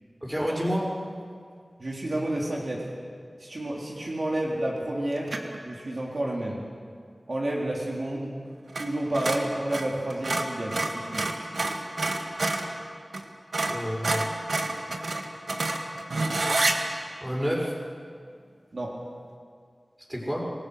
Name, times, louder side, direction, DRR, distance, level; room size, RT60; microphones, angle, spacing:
voice 1, 0.2-0.9 13.7-14.2 17.2-17.7 20.1-20.4, equal, 10° right, -2 dB, 6.4 m, -28 dB
voice 2, 1.8-2.9 3.4-5.3 5.6-6.6 7.3-8.3 8.8-11.3 18.7-18.9, right 1 dB, 60° right, -3 dB, 3.6 m, -30 dB
sound 1, 5.3-5.6 8.7-8.9 9.1-12.7 13.1-13.2 13.5-16.8, right 2 dB, 85° right, 1.9 m, -28 dB
27.5 x 20.0 x 6.4 m, 2.2 s
wide cardioid pair, 70°, 0 cm